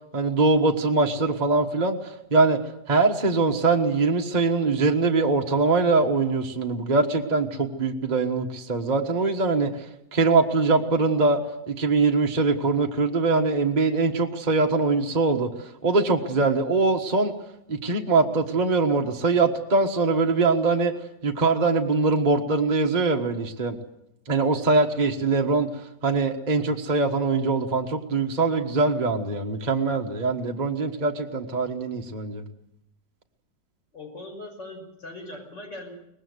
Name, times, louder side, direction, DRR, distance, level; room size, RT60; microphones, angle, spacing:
voice 1, 0.1-2.6 2.9-11.4 11.7-17.3 17.7-20.9 21.2-23.8 24.3-25.7 26.0-32.4, right 3 dB, 25° right, 2 dB, 1.5 m, -22 dB
voice 2, 33.9-35.9, left 2 dB, 75° left, 2 dB, 6.5 m, -40 dB
23.5 x 19.5 x 8.1 m, 0.81 s
omnidirectional pair, 1.9 m